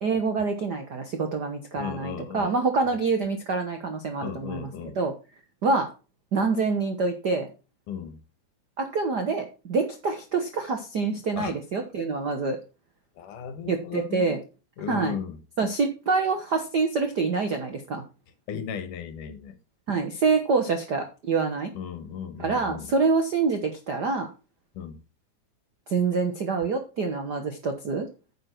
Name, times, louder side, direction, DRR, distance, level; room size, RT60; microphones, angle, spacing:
voice 1, 0.0-4.7 5.0-5.1 5.6-5.9 6.3-7.5 8.8-12.6 13.7-14.4 14.9-15.2 15.6-18.0 19.9-21.7 22.4-24.3 25.9-28.1, right 4 dB, 70° right, 0.9 m, -26 dB
voice 2, 1.7-2.6 4.2-5.0 7.9-8.2 11.4-11.5 13.2-14.4 14.8-15.4 18.5-19.6 21.7-22.9 24.7-25.0, left 7 dB, 75° left, 2.8 m, -36 dB
9.6 x 7.6 x 4.5 m
omnidirectional pair, 3.7 m